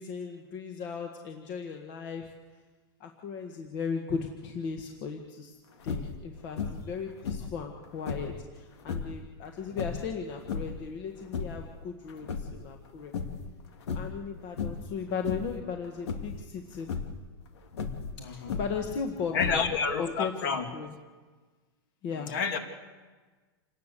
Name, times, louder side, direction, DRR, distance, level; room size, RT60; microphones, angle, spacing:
voice 1, 0.0-2.3 3.0-5.5 5.8-13.1 13.9-16.9 18.2-19.6 20.0-21.0 22.0-22.3, left 5 dB, 30° left, 3 dB, 1.5 m, -36 dB
sound 1, 5.8-6.2 6.6-6.9 7.2-8.4 8.8-9.2 9.7-10.8 11.2-11.7 12.1-12.9 13.1-13.5 13.8-14.2 14.6-14.9 15.2-15.6 16.1-16.4 16.8-17.2 17.7-18.9 19.3-19.9, left 5 dB, 90° left, 2.5 m, -35 dB
voice 2, 18.2-18.6 19.3-20.7 22.2-22.6, left 5 dB, 50° left, 5 dB, 2.7 m, -29 dB
27.5 x 18.5 x 6.8 m, 1.4 s
supercardioid pair, 170°, 14 cm